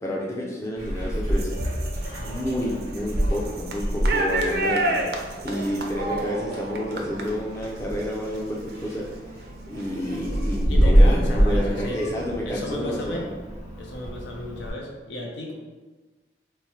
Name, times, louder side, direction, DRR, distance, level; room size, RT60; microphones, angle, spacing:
voice 1, 0.0-1.5 2.2-13.3, equal, 15° left, -3 dB, 0.4 m, -30 dB
Meow, 0.8-14.7, equal, 35° left, 1.5 m, -26 dB
sound 1, 1.3-9.1 9.5-10.6, right 1 dB, 60° right, 0.4 m, -31 dB
voice 2, 10.7-12.0 12.4-13.2 13.8-15.5, left 1 dB, 80° left, 0 dB, 0.6 m, -33 dB
3.1 x 2.1 x 4.1 m, 1.3 s
head